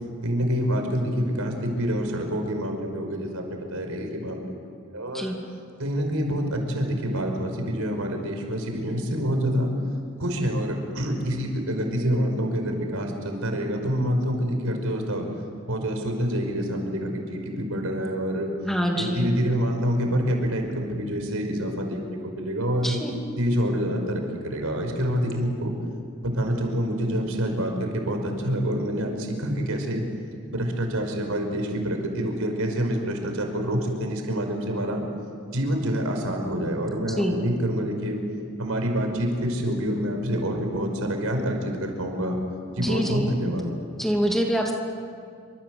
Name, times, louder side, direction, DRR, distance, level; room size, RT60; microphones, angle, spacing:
voice 1, 0.2-5.3 5.8-9.7 10.2-15.3 15.7-18.5 19.0-23.0 23.4-25.8 26.2-30.0 30.5-35.0 35.5-38.2 38.6-42.4 42.8-43.7, equal, 90° right, 3 dB, 5.4 m, -27 dB
voice 2, 18.6-19.4 22.8-23.1 37.2-37.4 42.8-43.3 44.0-44.7, equal, ahead, 0 dB, 2.6 m, -25 dB
28.0 x 25.5 x 7.9 m, 2.3 s
head